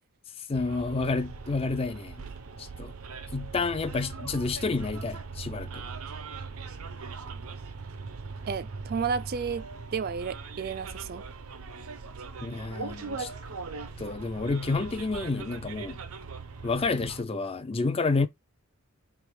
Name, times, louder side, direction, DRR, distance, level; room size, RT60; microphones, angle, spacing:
voice 1, 0.4-2.3 2.6-2.9 3.3-5.8 12.4-13.3 14.0-16.0 16.6-18.3, left 3 dB, 25° left, 0.4 m, -29 dB
Bus, 0.5-17.2, right 4 dB, 80° right, 0.7 m, -40 dB
voice 2, 8.5-9.6 9.9-11.2, right 6 dB, 45° right, 0.4 m, -32 dB
3.5 x 3.0 x 4.6 m
head